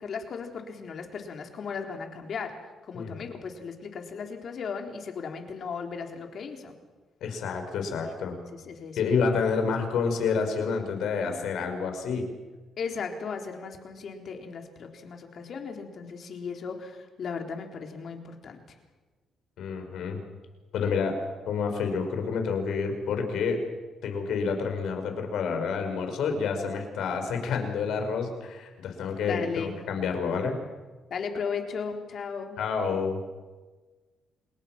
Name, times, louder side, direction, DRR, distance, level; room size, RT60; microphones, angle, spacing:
voice 1, 0.0-2.5 2.8-6.8 8.0-9.1 12.8-18.6 29.1-29.7 31.1-32.6, left 5 dB, 55° left, 3 dB, 3.9 m, -36 dB
voice 2, 7.2-8.3 9.0-12.2 19.6-20.2 20.7-21.2 21.5-23.6 24.0-30.6 32.6-33.2, left 5 dB, 75° left, 5 dB, 5.4 m, -28 dB
28.5 x 21.0 x 6.1 m, 1.3 s
cardioid pair, 90°, 0 cm